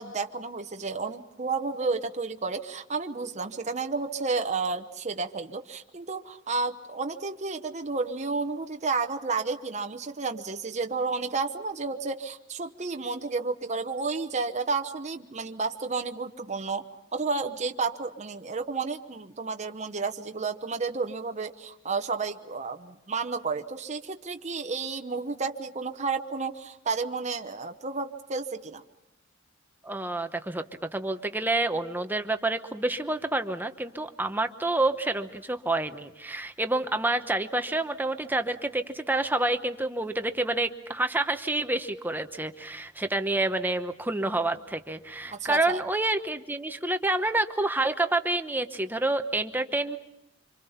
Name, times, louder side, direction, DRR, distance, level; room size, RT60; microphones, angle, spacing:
voice 1, 0.0-16.8 17.1-28.8 45.3-45.8, right 4 dB, 35° right, 5 dB, 1.0 m, -31 dB
voice 2, 29.8-30.6 30.9-50.0, right 2 dB, 10° right, 8 dB, 1.0 m, -28 dB
27.0 x 26.0 x 5.7 m, 0.84 s
head